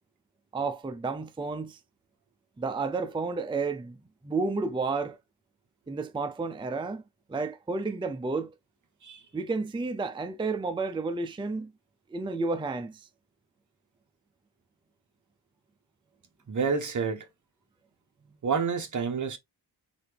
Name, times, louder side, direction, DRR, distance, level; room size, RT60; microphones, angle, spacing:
voice 1, 0.5-1.8 2.6-4.0 4.2-5.2 5.9-7.0 7.3-8.5 9.3-11.7 12.1-13.1, right 3 dB, 10° right, 0.5 m, -31 dB
voice 2, 16.5-17.3 18.4-19.4, right 5 dB, 45° right, 1.1 m, -29 dB
4.1 x 3.3 x 3.4 m
wide cardioid pair, 105°, 43 cm